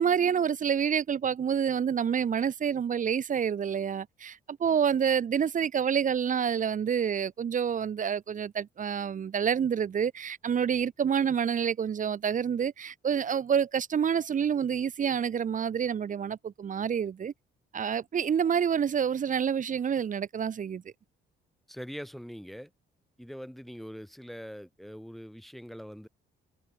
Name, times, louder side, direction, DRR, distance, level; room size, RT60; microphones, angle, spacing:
voice 1, 0.0-17.3 17.7-20.8, right 7 dB, 40° right, 0.7 m, -28 dB
voice 2, 21.7-22.7 23.2-26.1, equal, ahead, 1.3 m, -42 dB
cardioid pair, 90°, 20 cm